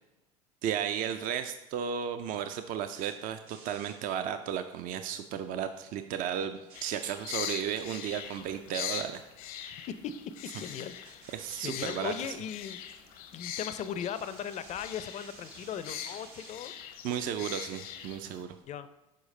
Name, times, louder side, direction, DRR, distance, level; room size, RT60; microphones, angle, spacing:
voice 1, 0.6-9.2 11.3-12.1 17.0-18.5, right 9 dB, 50° right, 9 dB, 0.4 m, -34 dB
sound 1, 2.2-18.6, right 4 dB, 80° right, 1.1 m, -58 dB
sound 2, 6.7-18.4, left 9 dB, 75° left, 0.7 m, -42 dB
voice 2, 9.9-12.8 13.3-16.7 18.7-18.9, left 8 dB, 40° left, 12 dB, 0.4 m, -38 dB
6.5 x 4.7 x 3.2 m, 1.0 s
hypercardioid pair, 80°, 19 cm